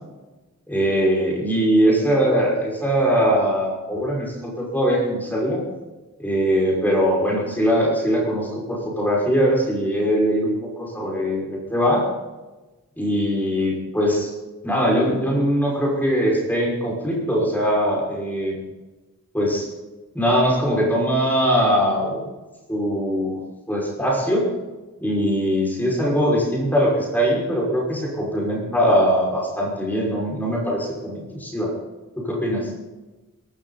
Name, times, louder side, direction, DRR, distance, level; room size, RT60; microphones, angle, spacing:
voice 1, 0.7-5.6 6.2-12.1 13.0-14.3 14.6-18.6 19.3-19.7 20.1-22.2 22.7-23.4 23.7-24.5 25.0-31.7 32.2-32.7, equal, 10° left, -3 dB, 5.8 m, -21 dB
22.5 x 13.0 x 4.2 m, 1.1 s
head